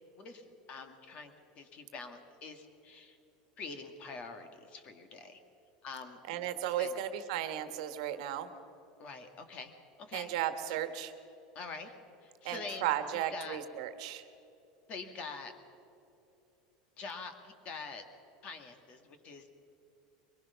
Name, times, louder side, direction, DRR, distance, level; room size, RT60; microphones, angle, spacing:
voice 1, 0.2-3.2 3.6-5.4 5.8-6.5 6.8-6.9 9.0-9.7 10.0-10.8 11.6-11.9 12.2-13.6 14.9-15.5 17.0-18.0 18.4-19.5, left 4 dB, 35° left, 7 dB, 1.9 m, -45 dB
voice 2, 6.3-8.5 10.1-11.1 12.4-14.2, right 11 dB, 75° right, 9 dB, 1.4 m, -35 dB
23.0 x 20.0 x 5.8 m, 2.9 s
supercardioid pair, 150°, 3 cm